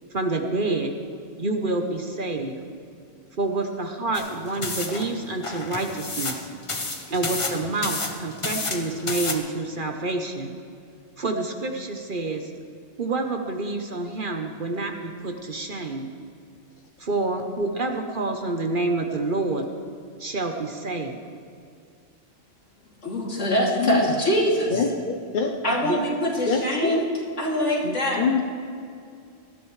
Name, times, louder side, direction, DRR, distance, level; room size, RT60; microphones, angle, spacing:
voice 1, 0.1-0.9 1.4-2.6 3.4-6.5 7.1-10.5 11.2-12.5 13.0-16.1 17.0-19.7 20.2-21.2 25.7-26.0 27.8-28.0, right 2 dB, 45° right, 4 dB, 1.1 m, -28 dB
sound 1, 4.1-9.3, left 3 dB, 25° left, 1.0 m, -31 dB
voice 2, 23.0-24.8 25.6-27.1 27.4-28.2, equal, 70° left, -3 dB, 3.1 m, -23 dB
voice 3, 23.8-24.1 24.7-25.5 26.5-27.0 28.2-28.4, left 5 dB, 50° left, 2 dB, 0.8 m, -25 dB
19.0 x 13.5 x 3.2 m, 2.4 s
omnidirectional pair, 1.3 m